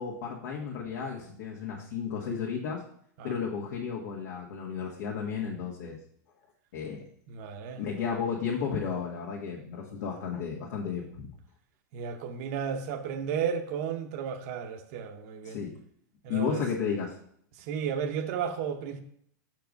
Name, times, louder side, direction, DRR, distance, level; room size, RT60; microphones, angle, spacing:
voice 1, 0.0-2.8 3.2-6.0 6.7-7.0 7.7-11.3 15.4-15.8 16.3-17.2, left 6 dB, 70° left, -3 dB, 1.7 m, -33 dB
voice 2, 7.3-7.8 11.9-15.6 16.2-16.6 17.6-19.0, right 7 dB, 50° right, 5 dB, 0.8 m, -33 dB
6.5 x 4.6 x 5.3 m, 0.66 s
supercardioid pair, 150°, 10 cm